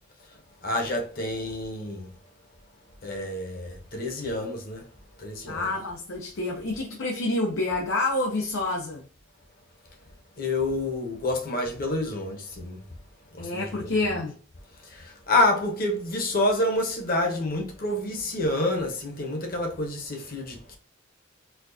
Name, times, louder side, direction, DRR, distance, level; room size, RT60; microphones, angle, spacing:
voice 1, 0.6-2.1 3.0-4.8 5.2-5.7 10.4-12.8 13.3-13.9 14.9-20.8, left 2 dB, 50° left, 1.0 m, -28 dB
voice 2, 5.5-9.1 13.4-14.4, left 2 dB, 85° left, 0.7 m, -28 dB
4.3 x 2.4 x 2.7 m
head